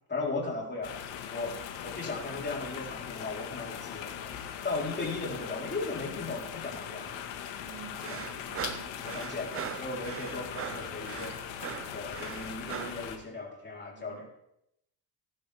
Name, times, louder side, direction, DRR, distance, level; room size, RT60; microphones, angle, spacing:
voice 1, 0.1-0.9 1.3-4.3 4.6-7.2 8.0-8.2 9.0-11.4 11.9-14.3, left 3 dB, 25° left, -2 dB, 4.1 m, -37 dB
sound 1, 0.8-13.2, left 9 dB, 80° left, 1.8 m, -40 dB
voice 2, 7.6-9.0 13.9-14.3, right 8 dB, 65° right, 3 dB, 2.4 m, -50 dB
sound 2, 8.0-13.0, right 9 dB, 30° right, 0.5 m, -40 dB
19.0 x 10.5 x 3.6 m, 0.80 s
cardioid pair, 130°, 44 cm